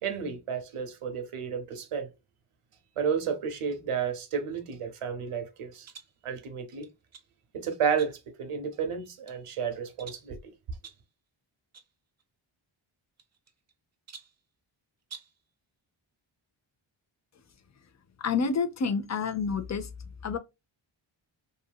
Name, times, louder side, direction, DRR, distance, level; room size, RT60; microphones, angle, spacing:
voice 1, 0.0-2.1 3.0-5.9 6.2-6.9 7.5-10.5, right 7 dB, 85° right, 0.8 m, -32 dB
sound 1, 5.8-6.2 6.8-7.3 8.0-8.4 8.9-9.4 10.0-10.3 10.8-11.1 11.7-11.9 12.2-12.3 13.2-13.7 14.1-14.4 15.0-15.4, right 6 dB, 35° right, 0.4 m, -49 dB
voice 2, 18.2-19.9 20.2-20.4, left 5 dB, 35° left, 0.4 m, -28 dB
2.7 x 2.6 x 2.2 m
wide cardioid pair, 120°, 50 cm